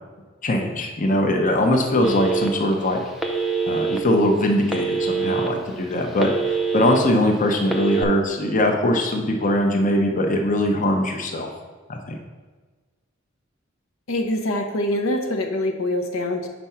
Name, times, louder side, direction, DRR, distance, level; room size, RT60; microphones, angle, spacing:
voice 1, 0.4-3.0 3.7-6.3 6.7-11.5 11.9-12.2, left 1 dB, 40° left, 2 dB, 0.7 m, -21 dB
Telephone, 2.0-2.7 3.2-4.0 4.7-5.5 5.9-7.0 7.6-8.0, right 4 dB, ahead, 0.5 m, -24 dB
voice 2, 14.1-16.5, left 1 dB, 80° left, 4 dB, 0.7 m, -24 dB
5.2 x 4.6 x 5.6 m, 1.4 s
head